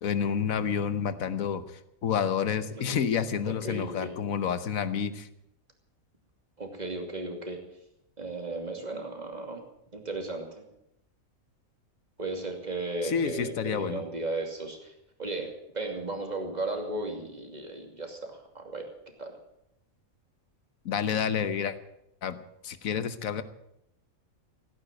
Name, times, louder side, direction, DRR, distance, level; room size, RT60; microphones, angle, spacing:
voice 1, 0.0-1.6 2.0-5.3 13.0-14.0 20.8-21.8 22.2-22.4 22.6-23.4, left 7 dB, 80° left, 12 dB, 1.4 m, -29 dB
voice 2, 2.7-3.1 3.4-4.1 6.6-7.6 8.2-9.6 9.9-10.5 12.2-14.9 15.2-18.9 19.2-19.4, right 2 dB, 30° right, 3 dB, 2.8 m, -35 dB
16.5 x 9.6 x 8.9 m, 0.80 s
omnidirectional pair, 1.4 m